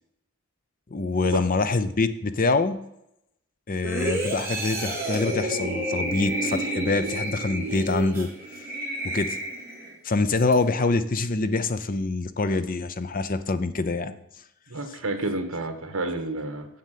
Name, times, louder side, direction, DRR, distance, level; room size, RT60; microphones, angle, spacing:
voice 1, 0.9-2.8 3.7-8.3 9.0-9.4 10.0-14.1, left 3 dB, 40° left, 12 dB, 0.6 m, -25 dB
sound 1, 3.8-9.9 10.4-10.5, right 2 dB, 10° right, 2.9 m, -30 dB
voice 2, 14.7-16.7, right 2 dB, 65° right, 6 dB, 1.7 m, -30 dB
7.9 x 7.6 x 7.4 m, 0.82 s
head